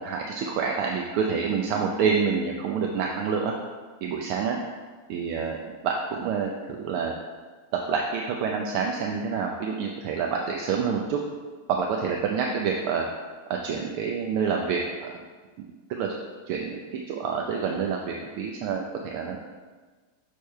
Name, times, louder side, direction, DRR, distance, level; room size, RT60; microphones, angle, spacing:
voice 1, 0.0-3.5 4.0-4.6 5.1-5.6 5.8-7.1 7.9-11.2 11.7-13.1 13.5-15.1 15.9-16.1 16.5-19.4, right 6 dB, 80° right, 1 dB, 1.5 m, -27 dB
6.5 x 4.6 x 5.5 m, 1.4 s
omnidirectional pair, 2.4 m